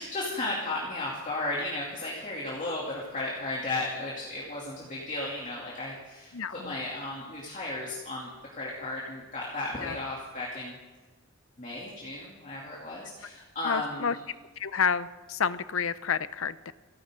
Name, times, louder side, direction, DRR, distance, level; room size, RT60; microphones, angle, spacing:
voice 1, 0.0-8.3 8.6-10.7 11.6-14.2, left 2 dB, 35° left, -5 dB, 2.8 m, -34 dB
voice 2, 6.3-6.7 9.8-10.0 13.6-14.1 14.6-16.7, left 6 dB, 65° left, 15 dB, 0.6 m, -29 dB
29.5 x 11.5 x 3.8 m, 1.3 s
head